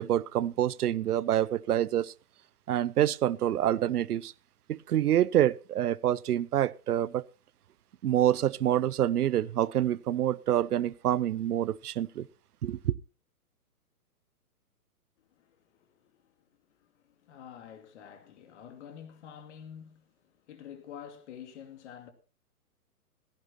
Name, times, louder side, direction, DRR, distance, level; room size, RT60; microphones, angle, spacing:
voice 1, 0.0-2.1 2.7-4.3 4.7-7.2 8.0-12.3 12.6-12.9, right 11 dB, 70° right, 0.8 m, -27 dB
voice 2, 15.2-22.1, left 8 dB, 45° left, 2.5 m, -49 dB
16.0 x 15.5 x 2.9 m
hypercardioid pair, 145°, 46 cm